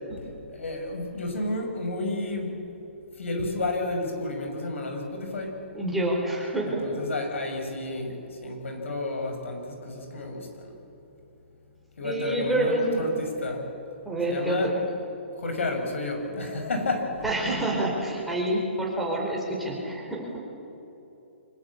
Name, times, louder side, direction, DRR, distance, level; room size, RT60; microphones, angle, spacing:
voice 1, 0.2-2.6 3.2-5.6 6.7-10.7 12.0-13.7 14.3-14.7 15.4-17.3, left 2 dB, 80° left, 4 dB, 6.0 m, -31 dB
voice 2, 5.7-6.9 12.0-13.2 14.0-14.9 17.2-20.5, right 1 dB, ahead, -3 dB, 4.6 m, -27 dB
25.0 x 23.0 x 8.6 m, 3.0 s
hypercardioid pair, 155°, 7 cm